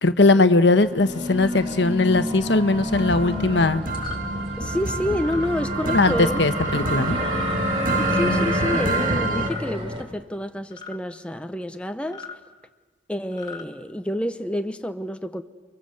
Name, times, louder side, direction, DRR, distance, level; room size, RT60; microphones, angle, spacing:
voice 1, 0.0-3.8 5.9-7.2, left 2 dB, 65° left, 1.2 m, -19 dB
sound 1, 0.7-10.0, left 1 dB, 30° right, 4.8 m, -29 dB
sound 2, 2.9-9.5, right 2 dB, 45° right, 1.7 m, -28 dB
sound 3, 3.9-4.2 5.1-5.5 6.6-6.9 7.9-8.3 9.3-9.7 10.7-11.0 12.0-12.4 13.2-13.7, left 6 dB, 20° left, 2.4 m, -39 dB
voice 2, 4.6-6.4 7.9-12.4 13.1-15.4, left 1 dB, 5° left, 0.8 m, -28 dB
29.5 x 24.5 x 7.8 m
head